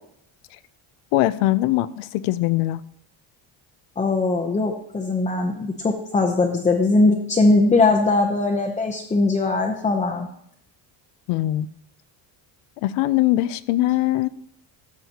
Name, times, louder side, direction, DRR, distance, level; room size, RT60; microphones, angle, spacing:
voice 1, 1.1-2.8 11.3-11.7 12.8-14.3, left 16 dB, 90° left, 15 dB, 0.6 m, -21 dB
voice 2, 4.0-10.3, left 3 dB, 15° left, 1 dB, 0.7 m, -20 dB
13.5 x 7.5 x 2.9 m, 0.70 s
cardioid pair, 150°, 50 cm